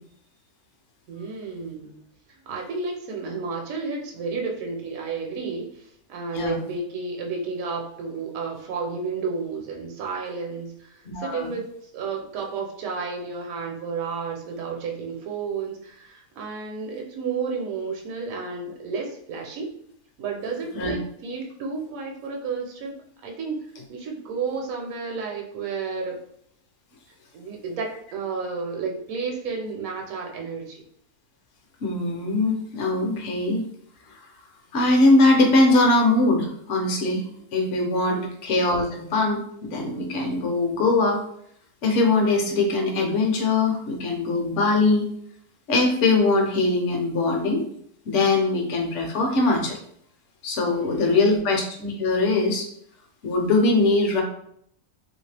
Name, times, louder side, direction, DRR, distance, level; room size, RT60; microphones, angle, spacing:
voice 1, 1.1-2.0 2.3-11.7 11.9-19.7 20.2-22.9 23.2-26.2 27.3-30.8 38.1-38.3 50.7-51.4, right 4 dB, 70° right, 1 dB, 1.1 m, -32 dB
voice 2, 11.0-11.5 20.8-20.9 31.8-33.6 34.1-34.2 34.7-37.2 37.5-41.2 41.8-45.1 45.7-47.6 48.0-49.8 50.4-52.7 53.2-54.2, left 2 dB, 60° left, 2 dB, 1.0 m, -21 dB
3.1 x 2.8 x 3.2 m, 0.69 s
omnidirectional pair, 1.6 m